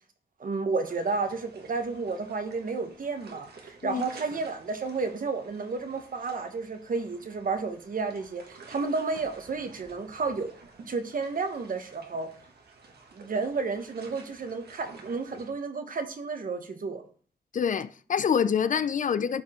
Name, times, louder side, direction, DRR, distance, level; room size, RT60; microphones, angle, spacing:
voice 1, 0.4-10.5 10.9-12.3 13.1-17.0, right 4 dB, 55° right, 1.2 m, -32 dB
sound 1, 0.8-15.5, right 4 dB, 70° right, 1.6 m, -52 dB
voice 2, 17.5-19.4, left 7 dB, 50° left, 0.4 m, -26 dB
12.0 x 4.8 x 3.7 m
wide cardioid pair, 135°, 17 cm